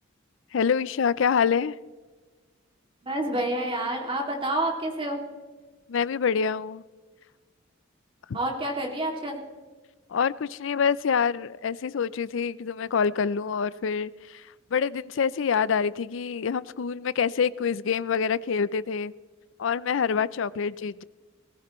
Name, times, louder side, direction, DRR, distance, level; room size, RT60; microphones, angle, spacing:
voice 1, 0.5-1.8 5.9-6.8 8.3-8.4 10.1-19.1 19.6-21.0, left 6 dB, 65° left, 19 dB, 0.4 m, -26 dB
voice 2, 3.0-5.2 8.3-9.4, right 1 dB, 25° right, 1 dB, 2.4 m, -28 dB
19.5 x 14.5 x 3.1 m, 1.3 s
head